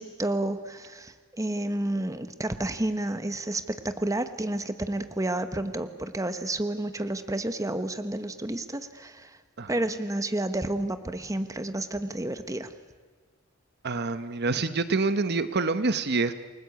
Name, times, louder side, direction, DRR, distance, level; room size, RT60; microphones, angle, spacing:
voice 1, 0.0-9.4 9.7-12.7, right 1 dB, 15° right, 10 dB, 1.1 m, -30 dB
voice 2, 13.8-16.3, right 3 dB, 50° right, 12 dB, 1.0 m, -26 dB
29.0 x 19.5 x 8.4 m, 1.4 s
head